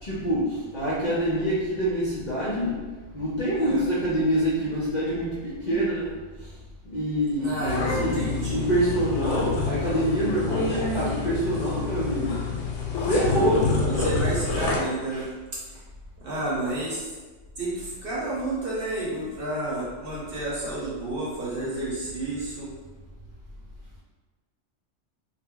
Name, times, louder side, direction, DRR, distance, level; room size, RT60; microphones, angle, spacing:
voice 1, 0.0-2.8 3.1-6.1 6.4-6.5 6.8-12.4 13.1-13.8 15.1-15.2, equal, 50° left, -8 dB, 0.6 m, -26 dB
voice 2, 7.4-8.7 13.8-15.3 16.2-17.1 17.6-22.7, right 2 dB, 55° right, -6 dB, 0.9 m, -31 dB
sound 1, 7.6-14.8, left 3 dB, 85° left, 0.9 m, -28 dB
2.3 x 2.1 x 3.6 m, 1.3 s
omnidirectional pair, 1.3 m